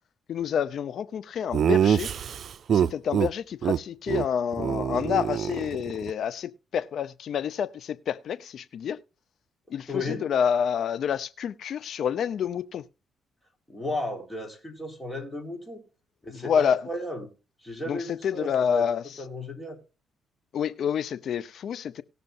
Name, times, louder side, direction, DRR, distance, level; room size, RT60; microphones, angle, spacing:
voice 1, 0.3-2.1 2.7-9.0 9.7-12.8 16.3-16.9 17.9-19.2 20.5-22.0, left 8 dB, 65° left, 0.8 m, -28 dB
Laughter, 1.5-3.3 3.6-3.8 4.1-4.3 4.5-6.1, right 8 dB, 55° right, 0.5 m, -25 dB
voice 2, 9.7-10.2 13.7-15.8 16.2-17.3 17.6-18.8 19.2-19.8, left 1 dB, 10° left, 4.2 m, -34 dB
19.0 x 6.7 x 2.6 m
cardioid pair, 90°, 0 cm